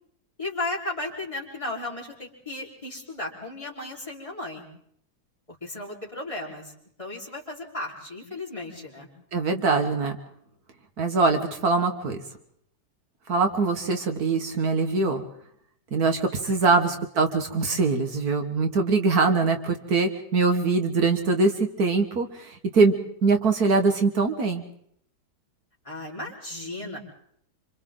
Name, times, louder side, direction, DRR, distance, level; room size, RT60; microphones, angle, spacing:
voice 1, 0.4-4.6 5.5-6.7 7.0-9.1 16.4-16.6 25.8-27.0, left 2 dB, 20° left, -4 dB, 4.4 m, -35 dB
voice 2, 9.3-10.2 11.0-12.2 13.3-15.2 15.9-22.9 23.2-24.6, right 4 dB, 65° right, 6 dB, 1.8 m, -23 dB
27.0 x 26.0 x 3.8 m, 0.69 s
omnidirectional pair, 1.7 m